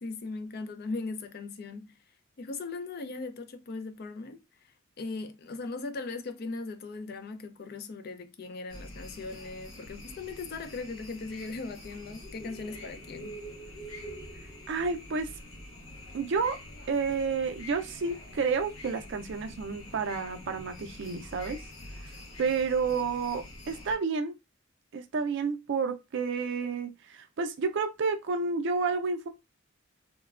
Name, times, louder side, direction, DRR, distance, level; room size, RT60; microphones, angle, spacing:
voice 1, 0.0-1.9 2.4-4.4 5.0-13.4, left 3 dB, 50° left, 0.4 m, -38 dB
sound 1, 8.7-23.9, left 1 dB, 75° left, 0.7 m, -46 dB
voice 2, 14.7-15.3 16.1-16.6 16.9-21.6 22.4-24.3 24.9-29.3, right 5 dB, 60° right, 0.4 m, -30 dB
3.1 x 2.1 x 2.3 m
head